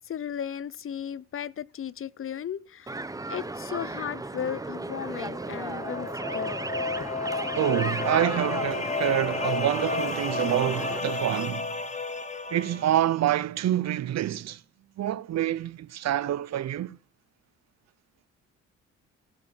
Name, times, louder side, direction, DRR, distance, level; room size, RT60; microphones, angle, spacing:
voice 1, 0.1-6.6, left 9 dB, 45° left, 0.7 m, -35 dB
sound 1, 2.9-11.0, right 2 dB, 10° right, 0.8 m, -35 dB
sound 2, 5.3-13.1, left 4 dB, 25° left, 2.2 m, -32 dB
voice 2, 7.5-11.7 12.5-14.6 15.0-17.0, right 12 dB, 60° right, 0.7 m, -27 dB
15.5 x 7.6 x 6.5 m
cardioid pair, 90°, 30 cm